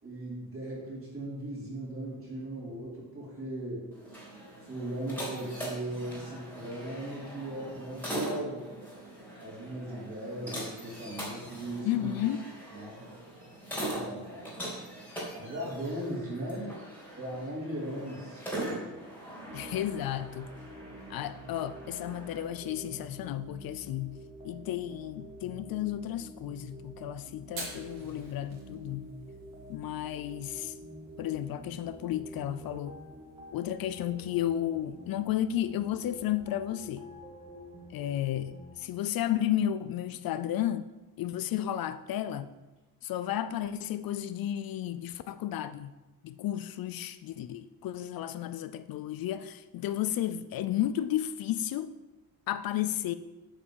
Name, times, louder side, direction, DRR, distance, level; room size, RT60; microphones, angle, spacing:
voice 1, 0.0-3.9 4.6-8.7 9.4-12.1 12.7-13.0 13.8-14.4 15.3-16.7 17.2-18.5 18.8-18.9, right 1 dB, 35° right, 3.9 m, -38 dB
sound 1, 3.9-22.4, right 1 dB, 5° left, 2.6 m, -41 dB
voice 2, 11.8-12.4 19.5-20.5 21.1-24.2 24.4-29.1 29.7-30.7 31.2-33.0 33.5-37.1 37.9-38.5 38.8-40.9 41.2-42.5 43.0-45.9 46.2-51.9 52.5-53.1, left 11 dB, 70° left, 0.5 m, -33 dB
sound 2, 19.5-38.7, equal, 15° right, 2.1 m, -48 dB
Fire, 27.4-36.6, right 3 dB, 65° right, 3.8 m, -51 dB
8.3 x 5.5 x 7.2 m
cardioid pair, 175°, 37 cm